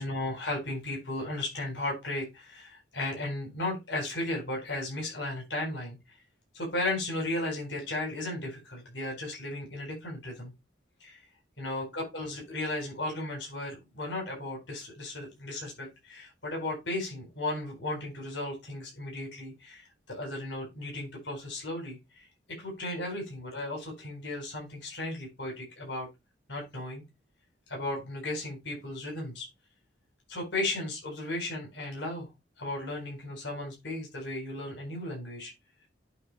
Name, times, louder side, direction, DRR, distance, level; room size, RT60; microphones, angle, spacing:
voice 1, 0.0-6.0 6.5-10.5 11.0-11.2 11.6-22.3 22.6-26.1 26.5-27.0 27.7-29.5 30.3-32.3 32.6-35.5, left 2 dB, 75° left, 0 dB, 4.3 m, -35 dB
8.8 x 4.1 x 4.4 m, 0.22 s
head